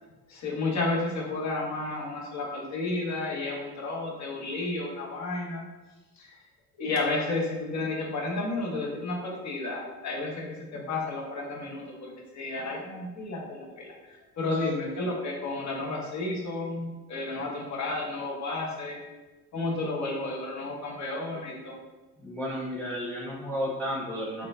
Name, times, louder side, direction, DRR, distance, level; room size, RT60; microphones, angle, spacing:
voice 1, 0.3-5.7 6.2-6.4 6.8-10.3 10.7-19.0 19.5-21.7, left 2 dB, 40° left, -2 dB, 1.0 m, -32 dB
voice 2, 22.2-24.5, equal, 5° left, -4 dB, 0.4 m, -32 dB
3.6 x 2.3 x 2.5 m, 1.2 s
figure-of-eight pair, 50°, 44 cm